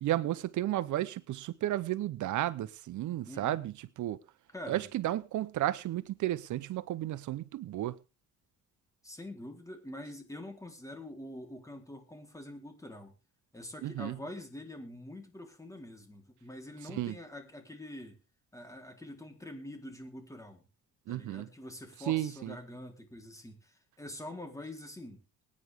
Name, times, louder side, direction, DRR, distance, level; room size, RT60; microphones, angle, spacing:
voice 1, 0.0-4.2 4.7-8.0 13.8-14.2 16.9-17.2 21.1-21.5 22.1-22.6, right 14 dB, 75° right, 0.9 m, -33 dB
voice 2, 3.2-3.6 4.5-4.9 9.0-13.1 13.5-18.2 18.5-20.7 21.1-25.2, left 1 dB, 10° left, 4.0 m, -45 dB
22.5 x 9.8 x 3.7 m
cardioid pair, 90°, 30 cm